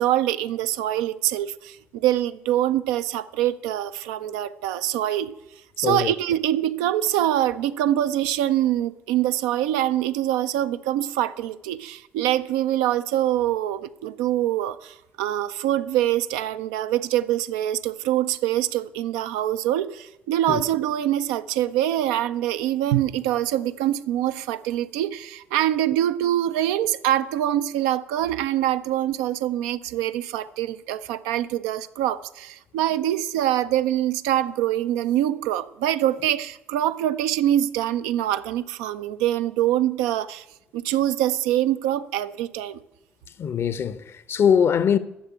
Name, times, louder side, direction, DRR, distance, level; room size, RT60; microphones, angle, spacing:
voice 1, 0.0-5.3 5.8-40.4 40.7-42.8, right 12 dB, 65° right, 0.5 m, -24 dB
voice 2, 5.8-6.1 20.5-20.6 43.4-45.0, left 7 dB, 45° left, 0.7 m, -22 dB
10.5 x 7.2 x 8.3 m
figure-of-eight pair, 45°, 6 cm